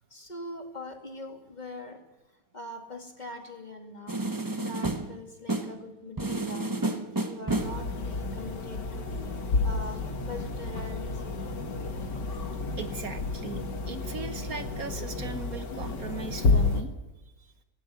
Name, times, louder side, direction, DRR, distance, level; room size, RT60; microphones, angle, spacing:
voice 1, 0.1-2.0 2.5-4.2 4.6-9.1 9.6-11.4, left 2 dB, 25° left, 3 dB, 2.5 m, -42 dB
sound 1, 4.1-5.8 6.2-7.9, right 2 dB, 15° right, 0.7 m, -30 dB
sound 2, 7.5-16.8, left 3 dB, 90° left, 2.6 m, -30 dB
voice 2, 12.8-13.6 13.9-16.9, right 5 dB, 60° right, 8 dB, 1.5 m, -38 dB
18.0 x 17.5 x 8.4 m, 1.0 s
omnidirectional pair, 1.8 m